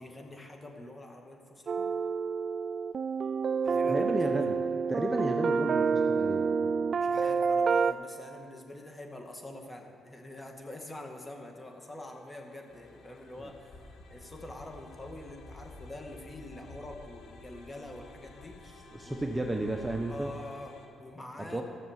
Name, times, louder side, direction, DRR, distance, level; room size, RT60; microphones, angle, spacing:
voice 1, 0.0-1.9 3.6-4.1 4.4-4.5 7.0-19.3 20.1-21.6, left 1 dB, 20° left, 3 dB, 2.0 m, -45 dB
sound 1, 1.7-7.9, right 5 dB, 50° right, 0.3 m, -28 dB
voice 2, 3.9-4.6 4.9-6.7 18.9-20.3 21.5-21.6, right 1 dB, 10° right, 2 dB, 1.0 m, -33 dB
sound 2, 11.6-20.9, left 4 dB, 85° left, 1.6 m, -57 dB
sound 3, 12.7-20.3, left 2 dB, 55° left, 1.6 m, -52 dB
14.5 x 6.9 x 7.3 m, 2.7 s
cardioid pair, 90°, 0 cm